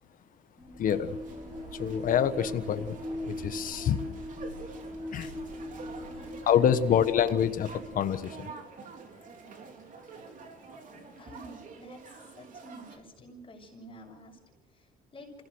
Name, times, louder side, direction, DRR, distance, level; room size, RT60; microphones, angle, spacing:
sound 1, 0.6-8.4, left 1 dB, 20° right, 5.8 m, -40 dB
voice 1, 0.8-1.2 1.7-3.0 3.3-4.2 5.1-5.3 6.5-8.5, left 9 dB, 55° left, 10 dB, 1.3 m, -26 dB
sound 2, 0.9-13.0, right 4 dB, 50° right, 3.4 m, -48 dB
voice 2, 5.2-5.7 5.9-6.4 11.2-15.3, equal, 30° left, 0 dB, 6.4 m, -50 dB
27.0 x 16.5 x 6.4 m, 1.2 s
cardioid pair, 110°, 17 cm